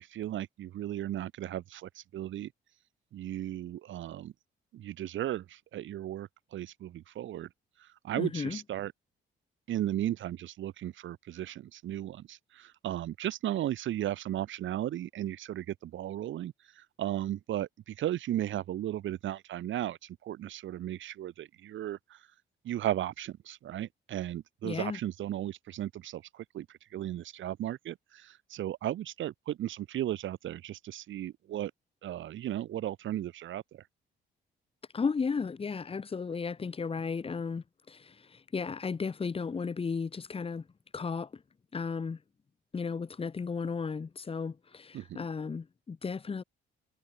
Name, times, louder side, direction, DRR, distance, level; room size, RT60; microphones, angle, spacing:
voice 1, 0.0-2.5 3.1-4.3 4.7-7.5 8.0-8.9 9.7-22.2 22.6-26.7 26.9-31.7 32.0-33.8 44.9-45.2, right 12 dB, 75° right, 2.0 m, -35 dB
voice 2, 8.2-8.6 24.6-25.0 34.9-40.6 40.9-41.4 41.7-42.2 42.7-46.4, left 5 dB, 30° left, 1.1 m, -34 dB
cardioid pair, 90°, 20 cm